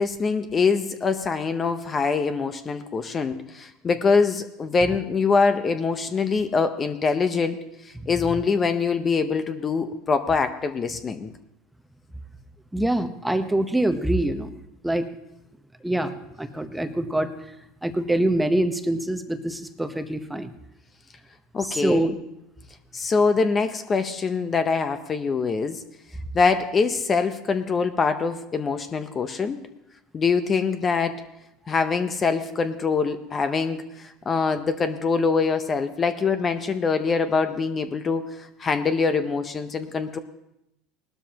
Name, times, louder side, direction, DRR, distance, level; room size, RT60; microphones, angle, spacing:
voice 1, 0.0-7.6 8.1-11.3 21.5-22.1 22.9-25.8 26.3-29.6 30.1-31.2 31.7-38.3 38.6-40.2, left 5 dB, 30° left, 9 dB, 0.7 m, -24 dB
voice 2, 12.7-14.5 14.8-15.1 15.8-17.3 17.8-20.5 21.6-22.1, right 1 dB, 5° right, 8 dB, 0.9 m, -25 dB
18.5 x 12.5 x 2.9 m, 0.86 s
supercardioid pair, 105°, 0 cm